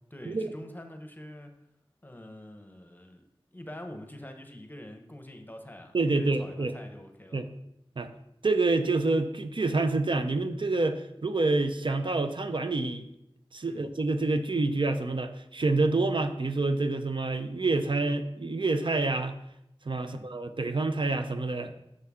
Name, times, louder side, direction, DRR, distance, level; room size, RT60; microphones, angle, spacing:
voice 1, 0.1-1.6 2.0-3.2 3.5-7.4 13.6-13.9 20.0-20.3, left 1 dB, 20° left, 5 dB, 0.8 m, -45 dB
voice 2, 5.9-6.7 7.3-7.5 8.0-8.1 8.4-13.0 13.5-19.3 19.9-21.7, right 3 dB, 55° right, 8 dB, 0.5 m, -27 dB
6.6 x 5.5 x 3.6 m, 0.81 s
wide cardioid pair, 55°, 10 cm